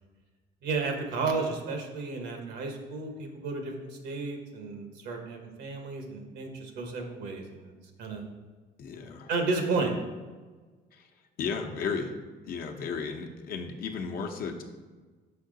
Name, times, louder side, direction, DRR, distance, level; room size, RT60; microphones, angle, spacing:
voice 1, 0.6-8.3 9.3-9.9, right 3 dB, 80° right, 3 dB, 1.2 m, -32 dB
voice 2, 8.8-9.3 10.9-11.1 11.4-14.6, left 5 dB, 60° left, 3 dB, 0.8 m, -34 dB
5.8 x 5.6 x 3.9 m, 1.4 s
cardioid pair, 110°, 17 cm